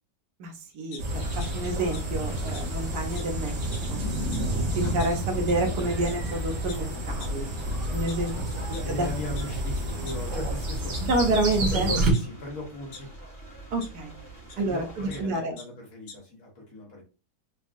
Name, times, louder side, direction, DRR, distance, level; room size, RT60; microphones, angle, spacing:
voice 1, 0.4-1.0 1.4-3.6 3.9-4.0 4.7-7.5 7.9-8.3 8.9-9.1 11.0-11.9 13.7-14.1 14.6-15.5, right 2 dB, 75° right, 3 dB, 1.2 m, -28 dB
sound 1, 0.9-1.5 1.9-2.0 2.5-2.6 3.1-3.2 3.6-3.9 4.3-4.4 5.0-5.1 5.5-5.6 6.1-6.2 6.7-6.8 7.2-7.3 7.9-8.8 9.4-9.5 9.8-10.5 10.9-11.0 11.5-11.6 12.1-13.0 13.8-13.9 14.5-14.6 14.9-15.2 15.6-15.7 15.9-16.1, left 5 dB, 75° left, 1.3 m, -44 dB
sound 2, 1.0-12.1, right 1 dB, 50° right, 1.0 m, -30 dB
sound 3, 1.1-15.2, right 1 dB, 20° left, 0.5 m, -43 dB
voice 2, 7.8-13.1 14.5-17.0, left 1 dB, 55° left, 0 dB, 1.3 m, -39 dB
3.5 x 2.3 x 2.4 m, 0.33 s
omnidirectional pair, 1.8 m